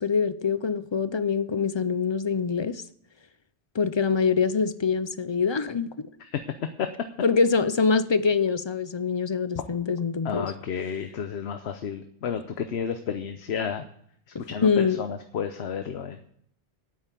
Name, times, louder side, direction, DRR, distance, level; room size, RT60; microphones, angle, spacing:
voice 1, 0.0-2.8 3.7-5.9 7.2-10.5 14.3-15.0, left 5 dB, 40° left, 0.4 m, -24 dB
voice 2, 10.2-13.8 14.5-16.2, left 7 dB, 70° left, 1.0 m, -31 dB
9.4 x 8.6 x 8.2 m
omnidirectional pair, 1.2 m